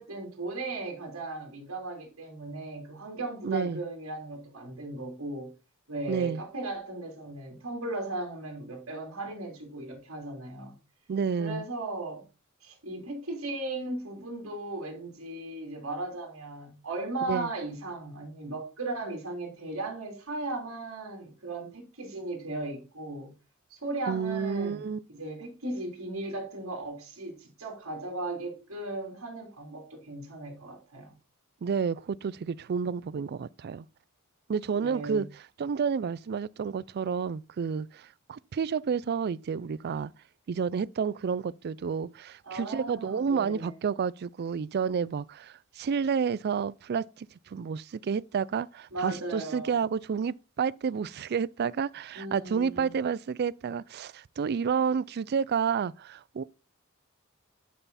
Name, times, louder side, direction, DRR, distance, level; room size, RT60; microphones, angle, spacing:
voice 1, 0.0-5.5 5.9-10.7 11.4-12.2 12.6-23.3 23.7-31.1 34.8-35.2 42.4-43.8 48.9-49.8 52.2-53.0, right 2 dB, 70° right, 3.5 m, -37 dB
voice 2, 3.4-3.8 6.1-6.4 11.1-11.6 17.3-17.5 24.1-25.0 31.6-33.9 34.5-35.3 35.6-40.1 40.5-56.4, right 6 dB, 50° right, 0.4 m, -30 dB
11.5 x 5.6 x 4.1 m
head